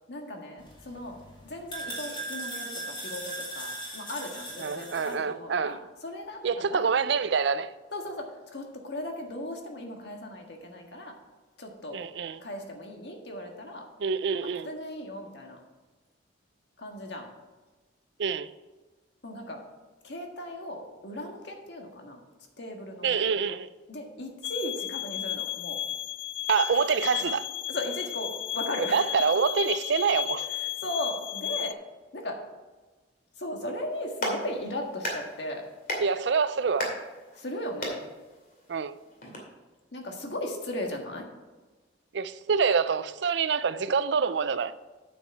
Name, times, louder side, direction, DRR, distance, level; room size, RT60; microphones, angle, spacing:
voice 1, 0.1-1.2 1.4-5.8 6.0-6.9 7.9-8.2 8.5-11.1 11.6-12.0 12.4-13.8 14.6-15.6 16.8-17.3 19.2-19.6 20.0-22.2 22.6-23.2 23.9-25.8 27.7-29.0 30.8-31.7 32.1-32.4 33.4-35.6 37.4-38.0 39.9-41.2, left 1 dB, 65° left, 1.7 m, -37 dB
sound 1, 0.6-5.2, right 1 dB, 25° left, 2.5 m, -39 dB
voice 2, 4.6-5.8 6.4-7.7 11.9-12.4 14.0-14.7 18.2-18.5 23.0-23.7 26.5-27.5 28.8-30.5 36.0-36.9 38.7-39.0 42.1-44.7, right 5 dB, 70° right, 0.4 m, -26 dB
sound 2, 24.4-31.7, left 12 dB, 80° left, 0.4 m, -34 dB
Clapping, 33.9-39.4, left 1 dB, 45° left, 2.4 m, -37 dB
9.1 x 7.3 x 4.6 m
head